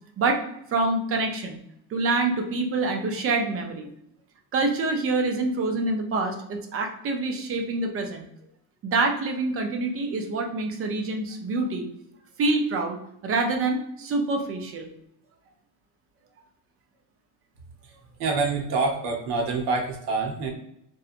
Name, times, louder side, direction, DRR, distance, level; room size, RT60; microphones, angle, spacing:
voice 1, 0.7-1.6 1.9-3.9 4.5-8.3 8.8-11.9 12.4-13.0 13.2-14.9 18.7-18.8, right 3 dB, 30° right, 4 dB, 0.5 m, -26 dB
voice 2, 18.2-20.5, right 3 dB, 60° right, 1 dB, 0.9 m, -26 dB
2.9 x 2.3 x 2.4 m, 0.74 s
supercardioid pair, 115°, 47 cm